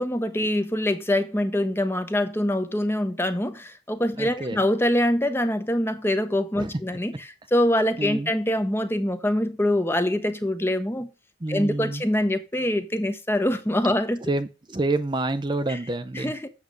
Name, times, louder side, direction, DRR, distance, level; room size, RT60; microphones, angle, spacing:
voice 1, 0.0-11.1 11.5-14.2 15.7-15.8 16.1-16.5, left 1 dB, 10° left, 0.9 m, -24 dB
voice 2, 4.2-4.6 6.6-6.7 8.0-8.3 11.4-12.0 14.3-16.3, right 2 dB, 25° right, 0.6 m, -28 dB
8.4 x 6.6 x 5.1 m
head